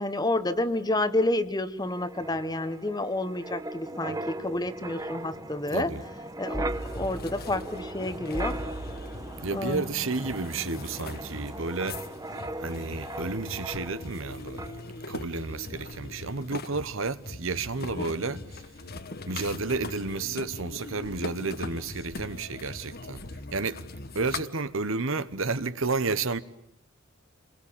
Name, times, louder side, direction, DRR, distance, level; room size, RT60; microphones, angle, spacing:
voice 1, 0.0-5.9 6.4-8.6 9.5-9.8, left 2 dB, 20° left, 1.3 m, -29 dB
Wind, 1.9-14.3 14.6-14.8, right 1 dB, 15° right, 1.1 m, -38 dB
sound 1, 6.7-24.4, left 2 dB, 45° left, 1.3 m, -41 dB
voice 2, 9.4-12.0 12.6-14.6 15.1-18.6 19.3-23.2 23.5-23.8 24.1-26.4, right 3 dB, 70° right, 1.2 m, -31 dB
29.0 x 22.0 x 8.8 m
head